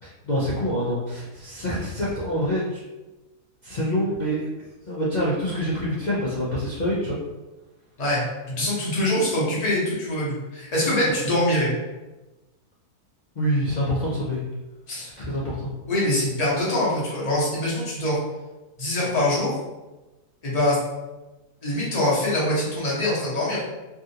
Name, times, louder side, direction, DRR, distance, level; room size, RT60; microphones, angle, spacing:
voice 1, 0.0-2.8 3.6-4.5 4.9-7.2 10.9-11.2 13.4-14.4 15.0-15.7, equal, 60° left, -7 dB, 0.4 m, -26 dB
voice 2, 8.0-11.7 14.9-15.1 15.9-18.2 18.8-19.6 20.4-20.8 21.6-23.6, left 1 dB, 30° left, -6 dB, 0.9 m, -24 dB
3.5 x 2.4 x 2.7 m, 1.1 s
omnidirectional pair, 1.6 m